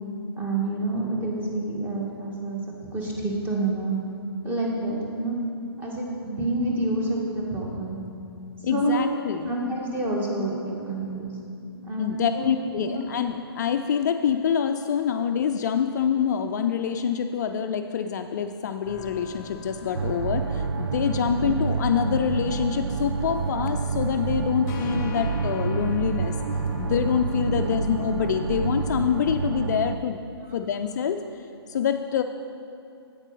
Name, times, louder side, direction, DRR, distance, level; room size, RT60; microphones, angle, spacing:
voice 1, 0.4-2.6 2.9-4.0 4.4-5.4 5.8-8.0 8.7-9.0 9.5-11.3 11.8-12.4 12.8-13.1 21.4-21.5 27.6-27.8, right 2 dB, 15° right, -2 dB, 1.6 m, -28 dB
voice 2, 8.6-9.5 12.0-26.4 26.8-30.2 30.5-32.2, left 7 dB, 45° left, 7 dB, 0.4 m, -26 dB
sound 1, 18.8-29.4, left 2 dB, 20° left, 0.9 m, -41 dB
sound 2, 19.9-30.0, right 5 dB, 75° right, 0.4 m, -28 dB
8.3 x 8.0 x 5.6 m, 2.6 s
figure-of-eight pair, 130°, 13 cm